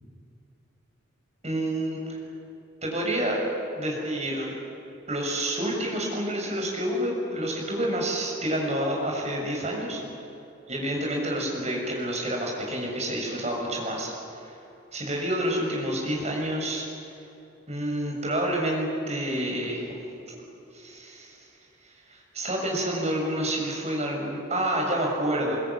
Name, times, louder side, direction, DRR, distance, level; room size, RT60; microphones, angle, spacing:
voice 1, 1.4-2.2 2.8-3.4 3.8-4.6 5.1-10.0 10.7-14.6 14.9-16.8 17.7-19.9 20.3-20.4 20.7-21.4 21.8-25.6, right 1 dB, 35° right, -1 dB, 6.9 m, -28 dB
23.5 x 23.0 x 9.8 m, 2.9 s
head